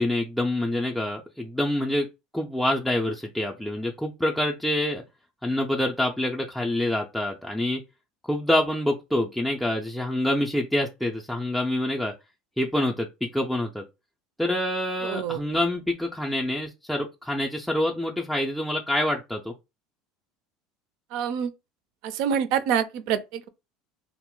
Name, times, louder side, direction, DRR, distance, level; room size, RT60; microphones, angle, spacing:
voice 1, 0.0-2.1 2.3-5.0 5.4-7.8 8.2-12.1 12.6-13.1 13.3-13.8 14.4-19.5, left 1 dB, ahead, 0.4 m, -26 dB
voice 2, 15.0-15.4 21.1-21.5 22.1-23.5, right 8 dB, 65° right, 0.4 m, -26 dB
2.1 x 2.0 x 3.7 m
hypercardioid pair, 90°, 0 cm